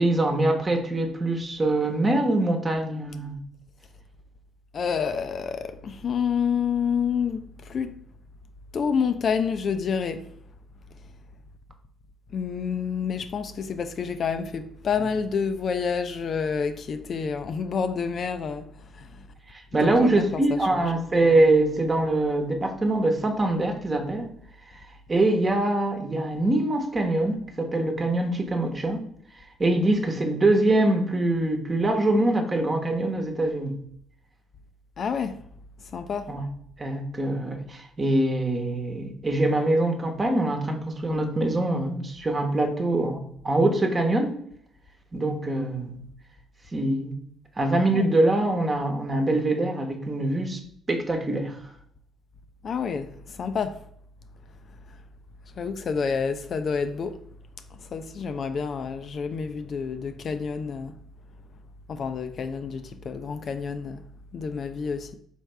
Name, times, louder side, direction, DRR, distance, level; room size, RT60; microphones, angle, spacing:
voice 1, 0.0-3.4 19.5-24.3 24.7-29.1 29.6-33.7 36.3-36.4 36.8-44.4 45.1-46.0 46.7-47.2 47.6-50.6 50.9-51.6, right 2 dB, 30° right, 1.0 m, -24 dB
voice 2, 4.7-7.9 8.7-10.3 12.3-18.7 18.9-19.1 19.7-20.9 35.0-35.4 35.9-36.3 47.9-48.0 52.6-53.8 55.6-57.1 57.9-60.9 61.9-64.0 64.3-65.1, left 6 dB, 50° left, 0.3 m, -28 dB
4.3 x 3.4 x 3.2 m
hypercardioid pair, 50°, 0 cm